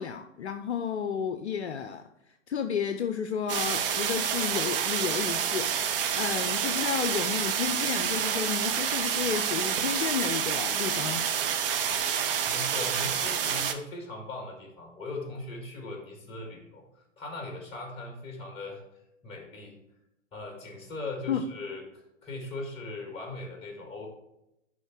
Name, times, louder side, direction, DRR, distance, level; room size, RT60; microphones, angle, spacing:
voice 1, 0.0-2.0 2.5-11.2 21.3-21.4, left 7 dB, 55° left, 8 dB, 0.6 m, -32 dB
sound 1, 3.5-13.7, right 8 dB, 45° right, 0.8 m, -28 dB
voice 2, 12.5-18.8 19.2-19.8 20.3-24.1, left 2 dB, 15° left, 2 dB, 1.9 m, -39 dB
10.5 x 3.7 x 4.5 m, 0.87 s
figure-of-eight pair, 120°, 39 cm